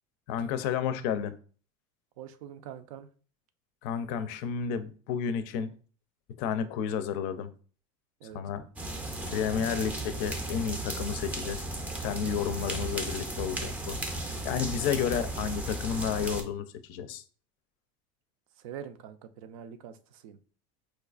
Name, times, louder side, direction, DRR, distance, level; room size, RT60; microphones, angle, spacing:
voice 1, 0.3-1.3 3.8-5.7 6.4-7.5 8.3-8.6 9.3-11.6 12.0-14.0 14.4-17.2, left 7 dB, 55° left, 12 dB, 0.4 m, -31 dB
voice 2, 2.2-3.1 8.2-9.0 14.9-15.0 18.6-20.4, right 9 dB, 75° right, 10 dB, 0.5 m, -45 dB
sound 1, 8.8-16.4, right 2 dB, 10° right, 0.5 m, -35 dB
4.4 x 2.3 x 2.4 m, 0.41 s
supercardioid pair, 140°, 18 cm